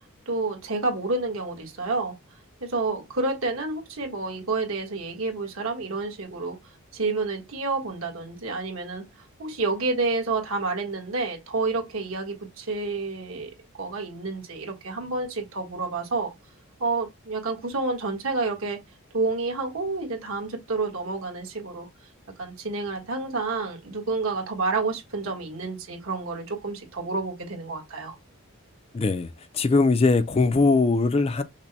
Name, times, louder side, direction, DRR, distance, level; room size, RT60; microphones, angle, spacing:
voice 1, 0.3-2.2 2.6-6.6 6.9-9.0 9.4-13.5 13.8-16.3 16.8-18.8 19.1-21.9 22.4-28.2, right 3 dB, 65° right, 1.5 m, -29 dB
voice 2, 28.9-29.3 29.5-31.4, left 3 dB, 25° left, 0.4 m, -20 dB
5.9 x 2.2 x 4.1 m
head